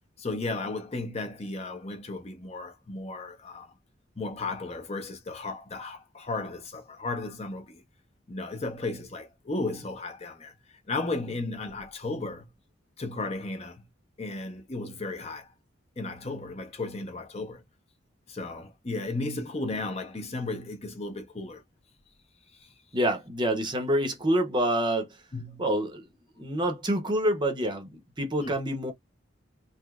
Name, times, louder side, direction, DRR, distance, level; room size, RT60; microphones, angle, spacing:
voice 1, 0.2-3.7 4.2-7.8 8.3-10.5 10.9-12.5 13.0-13.9 14.2-15.5 16.0-17.6 18.3-21.6 25.3-25.7 28.4-28.5, left 2 dB, 30° left, 0.7 m, -34 dB
voice 2, 22.9-25.1 25.6-26.0 26.4-28.9, right 1 dB, 25° right, 0.7 m, -27 dB
3.2 x 2.9 x 2.3 m
head